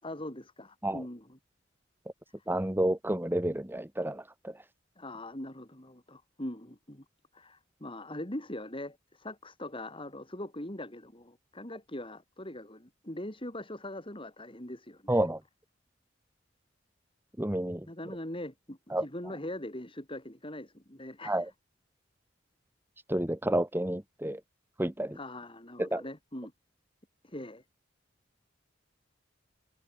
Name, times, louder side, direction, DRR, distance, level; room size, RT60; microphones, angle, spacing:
voice 1, 0.0-1.2 5.0-7.0 7.3-15.2 17.9-21.4 25.2-26.5 27.2-27.6, left 1 dB, 25° left, 4.2 m, -41 dB
voice 2, 2.5-4.6 15.1-15.4 17.4-17.9 18.9-19.1 21.2-21.5 23.1-24.4 24.8-25.2 25.8-26.0, right 1 dB, 10° right, 1.1 m, -30 dB
open air
head